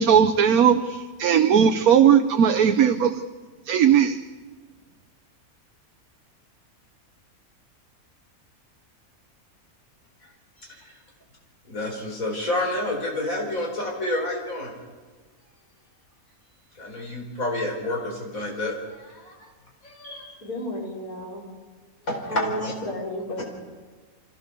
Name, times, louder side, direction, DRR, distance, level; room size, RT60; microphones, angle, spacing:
voice 1, 0.0-3.2 3.7-4.2, right 8 dB, 80° right, 5 dB, 1.3 m, -18 dB
voice 2, 10.6-11.0 11.6-14.7 16.8-19.5 19.8-20.1 22.1-22.7 23.4-23.5, left 1 dB, 70° left, 0 dB, 4.9 m, -29 dB
voice 3, 20.0-21.5 22.3-23.4, equal, 85° left, -4 dB, 5.7 m, -33 dB
25.0 x 16.0 x 6.8 m, 1.4 s
omnidirectional pair, 1.5 m